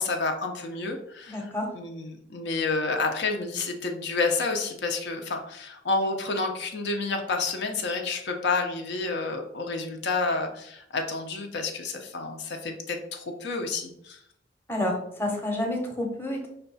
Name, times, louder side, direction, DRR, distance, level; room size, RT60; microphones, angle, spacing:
voice 1, 0.0-14.2, left 3 dB, 70° left, 3 dB, 0.6 m, -29 dB
voice 2, 1.3-1.7 14.7-16.5, left 1 dB, 15° left, 1 dB, 0.8 m, -29 dB
5.6 x 2.3 x 4.0 m, 0.73 s
head